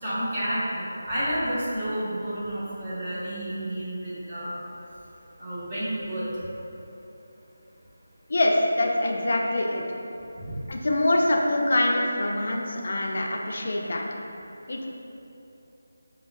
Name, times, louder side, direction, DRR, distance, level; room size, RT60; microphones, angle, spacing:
voice 1, 0.0-4.6 5.4-6.3 10.4-10.5, right 1 dB, 30° right, -13 dB, 1.1 m, -30 dB
voice 2, 8.3-9.8 10.7-14.0 14.7-14.9, left 1 dB, 60° left, -1 dB, 0.5 m, -24 dB
6.3 x 2.2 x 2.3 m, 2.9 s
figure-of-eight pair, 165°, 0 cm